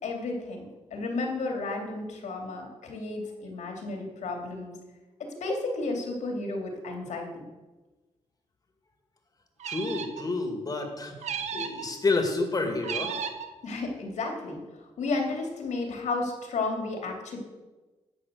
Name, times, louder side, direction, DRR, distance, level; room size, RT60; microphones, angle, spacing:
voice 1, 0.0-4.7 5.2-7.5 13.6-14.6 15.0-17.4, left 3 dB, 80° left, 2 dB, 2.8 m, -32 dB
voice 2, 9.6-13.2, left 3 dB, 30° left, 4 dB, 2.2 m, -29 dB
sound 1, 9.6-10.3 11.2-11.9 12.8-13.5, right 7 dB, 75° right, 1.0 m, -34 dB
12.0 x 7.9 x 6.8 m, 1.2 s
cardioid pair, 115°, 12 cm